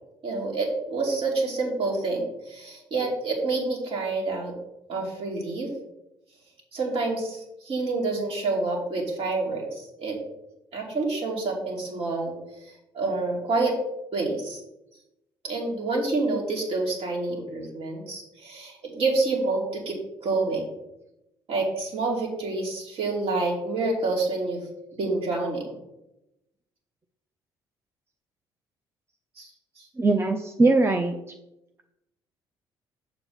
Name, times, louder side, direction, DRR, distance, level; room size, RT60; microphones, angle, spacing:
voice 1, 0.2-4.6 4.9-5.7 6.7-10.2 10.7-12.3 12.9-13.8 14.1-14.6 15.4-20.7 21.5-24.6 25.0-25.7 29.4-29.5 29.8-29.9, right 3 dB, 55° right, -2 dB, 2.9 m, -28 dB
voice 2, 30.0-31.1, right 2 dB, 20° right, 6 dB, 0.7 m, -21 dB
7.9 x 7.1 x 4.1 m, 0.91 s
hypercardioid pair, 50°, 12 cm